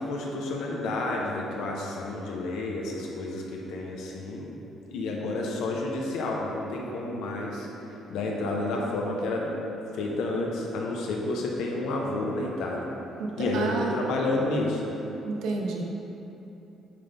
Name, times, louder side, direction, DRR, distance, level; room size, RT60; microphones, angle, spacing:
voice 1, 0.0-4.5 4.9-7.7 8.1-9.5 9.9-12.9 13.4-15.0, left 2 dB, 85° left, -1 dB, 0.7 m, -30 dB
voice 2, 13.2-13.9 15.2-15.8, right 3 dB, 85° right, 0 dB, 0.8 m, -30 dB
9.1 x 4.0 x 3.3 m, 3.0 s
cardioid pair, 150°, 0 cm